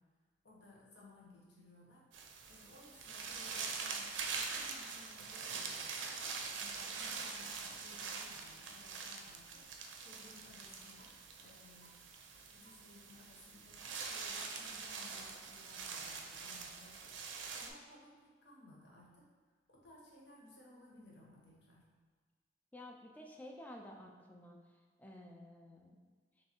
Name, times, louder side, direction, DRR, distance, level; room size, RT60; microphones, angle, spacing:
voice 1, 0.4-2.0 2.5-5.9 6.2-9.6 10.0-11.9 12.4-17.1 17.5-19.2 19.7-21.8, left 2 dB, 65° left, -4 dB, 1.0 m, -60 dB
sound 1, 2.1-17.7, right 5 dB, 85° right, 0.5 m, -44 dB
voice 2, 22.7-24.6 25.0-26.0, left 1 dB, 10° left, 1 dB, 0.4 m, -52 dB
3.3 x 3.1 x 4.4 m, 1.5 s
head